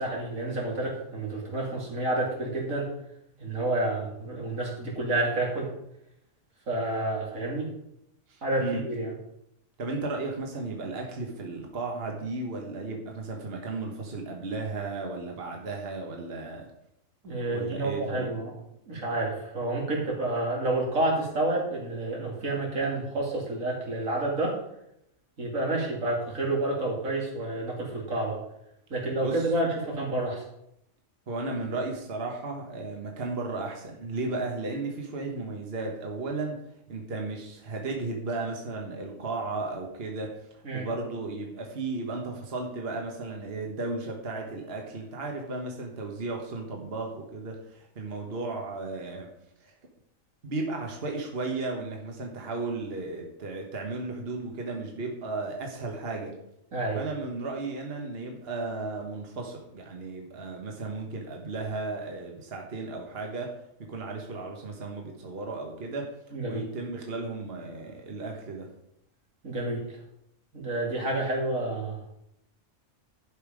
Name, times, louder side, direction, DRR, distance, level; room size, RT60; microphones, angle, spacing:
voice 1, 0.0-2.9 3.4-5.7 6.7-7.7 8.4-9.1 17.2-18.5 18.9-24.5 25.4-28.4 28.9-30.4 40.6-40.9 56.7-57.0 66.3-66.7 69.4-69.8 70.5-72.0, right 2 dB, 85° right, -2 dB, 3.0 m, -29 dB
voice 2, 8.3-8.8 9.8-16.7 17.5-18.3 29.2-29.5 31.3-36.6 36.9-40.4 40.7-49.3 49.6-49.7 50.4-56.4 56.9-63.5 63.8-66.1 66.5-68.7, right 3 dB, 50° right, 1 dB, 1.6 m, -34 dB
11.5 x 5.5 x 5.1 m, 0.78 s
omnidirectional pair, 1.4 m